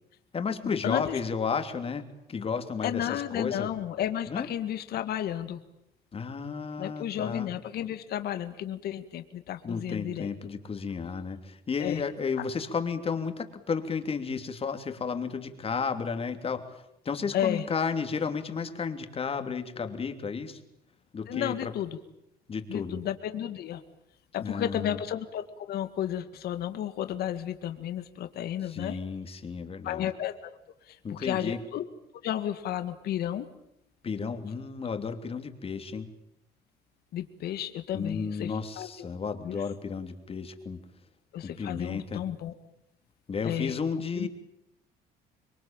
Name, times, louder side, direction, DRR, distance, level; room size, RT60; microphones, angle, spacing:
voice 1, 0.3-2.0 2.3-3.7 4.3-4.5 6.1-7.5 9.6-16.6 17.0-20.6 21.1-21.7 22.5-23.0 24.4-25.0 28.7-30.1 31.0-31.6 34.0-36.1 37.9-40.8 41.4-42.2 43.3-44.3, left 5 dB, 35° left, 8 dB, 3.1 m, -32 dB
voice 2, 0.8-1.2 2.8-5.6 6.8-10.3 11.8-12.0 17.3-17.7 21.3-22.0 22.7-23.8 24.3-29.0 29.8-30.5 30.9-31.8 32.2-33.5 37.1-38.9 39.4-39.6 41.3-42.5 43.4-43.7 44.2-44.3, left 11 dB, 70° left, 9 dB, 2.1 m, -32 dB
26.0 x 22.5 x 8.9 m, 0.81 s
cardioid pair, 110°, 17 cm